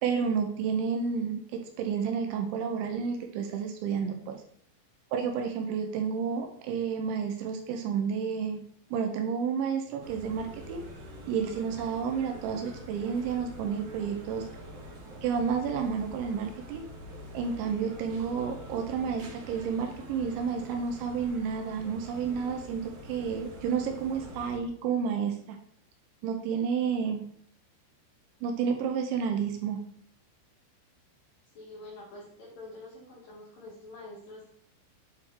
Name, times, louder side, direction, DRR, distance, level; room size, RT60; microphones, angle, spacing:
voice 1, 0.0-4.3 5.1-8.6 8.9-10.8 11.3-14.4 15.2-16.8 17.3-25.6 26.2-27.2 28.4-29.8, right 6 dB, 80° right, 4 dB, 2.9 m, -30 dB
sound 1, 10.0-24.6, equal, 55° right, 3.0 m, -45 dB
voice 2, 31.5-34.5, left 2 dB, 55° left, -4 dB, 2.8 m, -46 dB
8.8 x 4.4 x 4.2 m, 0.63 s
omnidirectional pair, 5.7 m